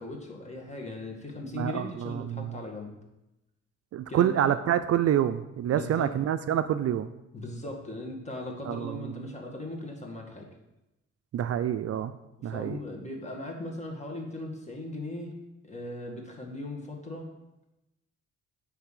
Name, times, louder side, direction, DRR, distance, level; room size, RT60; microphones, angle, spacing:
voice 1, 0.0-2.9 4.1-4.6 5.7-6.1 7.3-10.5 12.4-15.4 15.6-17.3, left 2 dB, 25° left, 1 dB, 1.9 m, -38 dB
voice 2, 1.5-2.6 3.9-7.1 8.6-9.2 11.3-12.1 12.4-12.8, right 10 dB, 55° right, 10 dB, 0.4 m, -27 dB
9.4 x 3.4 x 6.5 m, 0.93 s
cardioid pair, 90°, 30 cm